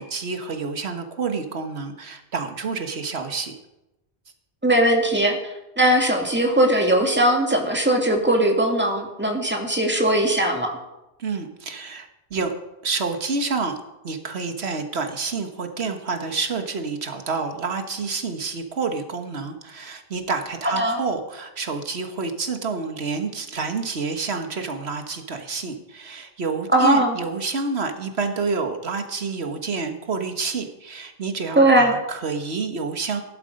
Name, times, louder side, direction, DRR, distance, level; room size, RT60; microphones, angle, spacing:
voice 1, 0.0-3.5 11.2-12.5 12.8-13.8 14.0-33.2, right 4 dB, 80° right, 6 dB, 1.6 m, -28 dB
voice 2, 4.6-5.4 5.8-10.7 20.8-21.0 26.7-27.2 31.6-31.9, right 1 dB, 10° right, 1 dB, 2.1 m, -19 dB
16.0 x 11.5 x 5.2 m, 0.95 s
omnidirectional pair, 1.1 m